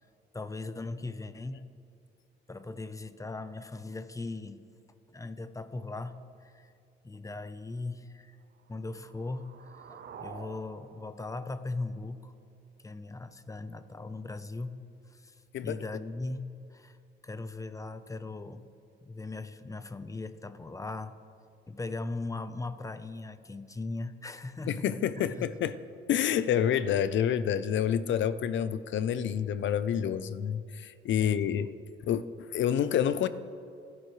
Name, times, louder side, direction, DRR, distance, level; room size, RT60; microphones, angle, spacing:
voice 1, 0.3-1.7 2.5-4.6 5.1-6.7 7.0-8.4 8.7-12.3 12.8-17.0 17.2-18.7 19.0-21.2 21.7-24.9 25.2-25.5 31.2-31.6, left 3 dB, 15° left, 11 dB, 0.8 m, -39 dB
sound 1, 8.5-12.5, right 6 dB, 60° right, 1.0 m, -50 dB
voice 2, 24.7-25.7 26.1-31.7 32.0-32.2 32.5-33.3, left 9 dB, 70° left, 14 dB, 0.7 m, -28 dB
30.0 x 11.0 x 3.3 m, 2.4 s
cardioid pair, 90°, 20 cm